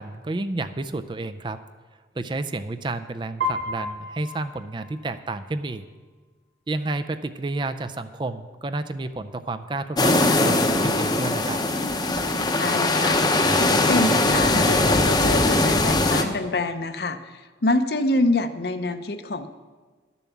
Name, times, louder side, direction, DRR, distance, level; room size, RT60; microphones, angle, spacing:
voice 1, 0.0-1.6 2.2-5.8 6.7-11.6, right 2 dB, 25° right, 10 dB, 0.4 m, -30 dB
Piano, 3.4-5.4, left 1 dB, 85° right, 1.5 m, -32 dB
sound 1, 10.0-16.2, left 2 dB, 20° left, 0.7 m, -20 dB
voice 2, 12.5-13.2 13.6-19.5, left 2 dB, 60° left, 9 dB, 0.7 m, -26 dB
11.5 x 7.0 x 7.2 m, 1.4 s
head